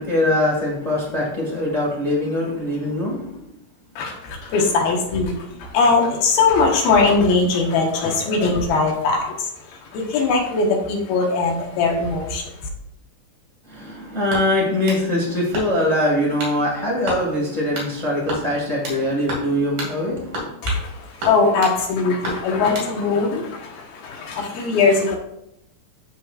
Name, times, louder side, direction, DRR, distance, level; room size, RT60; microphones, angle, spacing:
voice 1, 0.0-3.4 13.7-20.5, left 1 dB, 40° left, -4 dB, 0.5 m, -22 dB
voice 2, 4.0-9.5 9.9-12.5 20.6-25.2, left 4 dB, 85° left, 1 dB, 3.2 m, -20 dB
sound 1, 14.3-15.0 15.5-15.9 16.4-16.6 17.1-17.2 17.7-17.9 18.3-19.0 19.3-19.5 19.8-19.9 20.3-20.9 21.2-21.8 22.2-22.9, equal, 55° right, 3.5 m, -30 dB
13.0 x 5.2 x 2.4 m, 0.80 s
omnidirectional pair, 4.2 m